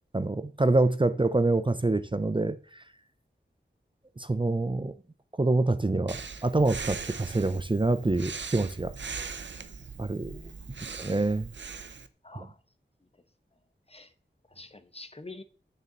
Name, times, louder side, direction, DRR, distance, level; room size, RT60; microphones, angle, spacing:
voice 1, 0.1-2.8 4.2-4.9 5.4-8.9 10.0-10.3 10.9-11.5 12.3-12.5, right 2 dB, 25° right, 0.6 m, -26 dB
Breathing, 6.1-12.1, right 5 dB, 70° right, 0.7 m, -40 dB
voice 2, 10.2-10.8 12.2-12.6 13.9-14.1 14.5-15.4, left 2 dB, 30° left, 1.0 m, -46 dB
6.7 x 6.6 x 7.3 m
wide cardioid pair, 50°, 19 cm